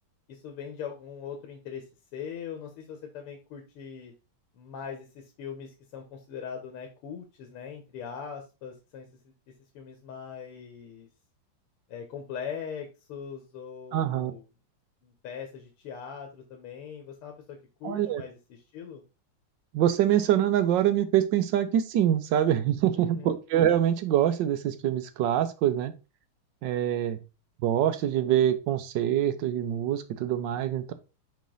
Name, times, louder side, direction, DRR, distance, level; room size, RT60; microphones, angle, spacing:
voice 1, 0.3-1.8 2.1-4.1 4.5-9.1 9.8-11.1 11.9-14.5 15.0-19.0 23.0-23.3, left 7 dB, 90° left, 1.9 m, -41 dB
voice 2, 13.9-14.3 17.8-18.2 19.7-25.9 26.6-27.2 27.6-30.9, right 11 dB, 65° right, 1.2 m, -25 dB
5.3 x 5.1 x 3.8 m
omnidirectional pair, 2.4 m